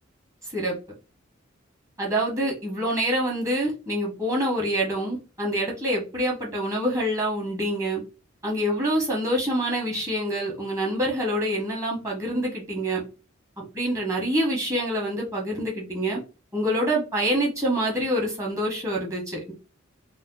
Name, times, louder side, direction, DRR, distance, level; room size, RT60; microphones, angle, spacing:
voice 1, 2.0-8.0 8.4-13.0 13.6-16.2 16.5-19.5, equal, 15° right, -2 dB, 1.2 m, -26 dB
3.5 x 2.1 x 3.8 m, 0.32 s
head